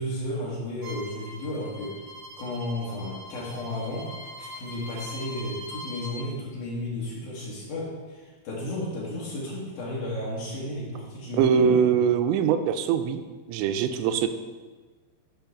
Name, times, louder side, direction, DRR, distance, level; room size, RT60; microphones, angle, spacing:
voice 1, 0.0-2.0 2.4-4.1 4.4-11.9, left 1 dB, 60° left, -5 dB, 3.6 m, -33 dB
Bowed string instrument, 0.8-6.2, left 1 dB, 70° right, 1.6 m, -42 dB
voice 2, 11.4-13.2 13.5-14.3, right 7 dB, 90° right, 8 dB, 2.8 m, -22 dB
9.3 x 5.1 x 6.0 m, 1.3 s
omnidirectional pair, 5.1 m